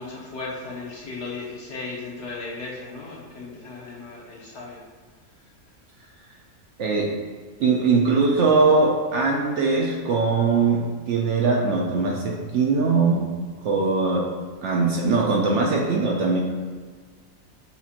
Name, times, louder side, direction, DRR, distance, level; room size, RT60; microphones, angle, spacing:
voice 1, 0.0-4.8, left 3 dB, 60° left, -4 dB, 1.0 m, -36 dB
voice 2, 7.6-13.2 13.6-14.2 14.6-16.4, right 4 dB, 65° right, -2 dB, 0.8 m, -21 dB
7.0 x 2.5 x 2.8 m, 1.5 s
omnidirectional pair, 1.5 m